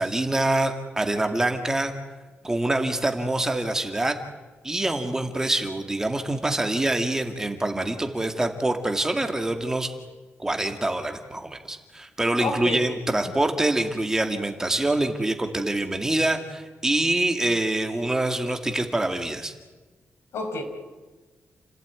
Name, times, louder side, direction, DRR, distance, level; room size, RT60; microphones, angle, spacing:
voice 1, 0.0-1.9 2.4-4.2 4.6-9.9 10.4-19.5, right 2 dB, 10° right, 6 dB, 2.1 m, -25 dB
voice 2, 12.4-12.8 13.2-13.3 20.3-20.6, left 3 dB, 85° left, 4 dB, 5.5 m, -29 dB
30.0 x 16.5 x 9.7 m, 1.3 s
wide cardioid pair, 155°, 4 cm